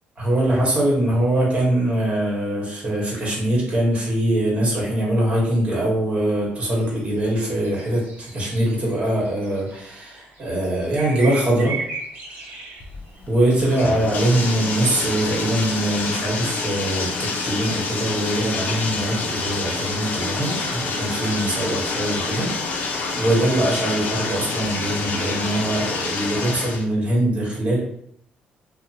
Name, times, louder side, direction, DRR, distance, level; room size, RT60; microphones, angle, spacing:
voice 1, 0.2-11.7 13.3-22.5 23.2-27.8, right 1 dB, 35° right, -3 dB, 1.3 m, -22 dB
sound 1, 6.7-7.3 7.5-13.5, right 4 dB, 60° right, 0.8 m, -36 dB
Bathtub (filling or washing), 12.8-26.8, left 3 dB, 60° left, 0.5 m, -27 dB
2.8 x 2.1 x 2.8 m, 0.70 s
cardioid pair, 100°, 3 cm